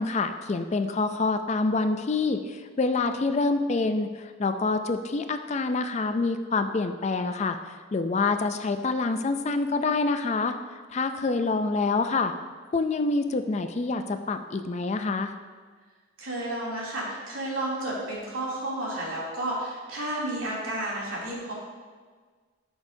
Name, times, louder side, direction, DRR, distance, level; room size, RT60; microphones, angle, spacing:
voice 1, 0.0-10.6 10.9-12.3 12.7-15.3, left 3 dB, 30° left, 8 dB, 0.3 m, -26 dB
voice 2, 16.2-21.5, right 1 dB, 80° right, -6 dB, 2.7 m, -31 dB
13.5 x 6.3 x 2.7 m, 1.5 s
head